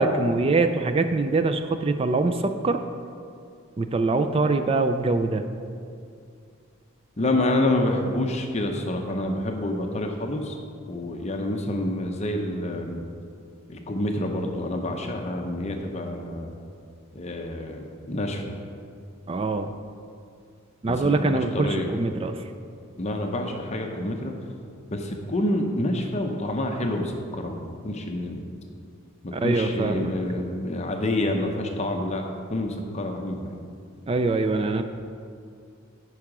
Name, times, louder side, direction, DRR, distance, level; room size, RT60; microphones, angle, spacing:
voice 1, 0.0-2.8 3.8-5.4 19.3-19.7 20.8-22.4 29.3-30.1 34.1-34.8, right 3 dB, 25° right, 8 dB, 0.3 m, -23 dB
voice 2, 7.2-10.5 10.9-13.0 13.7-16.5 17.1-18.6 21.0-21.9 23.0-24.3 24.9-28.4 29.4-32.2 32.5-33.6, left 1 dB, 30° left, 3 dB, 0.6 m, -28 dB
10.0 x 4.8 x 6.0 m, 2.3 s
head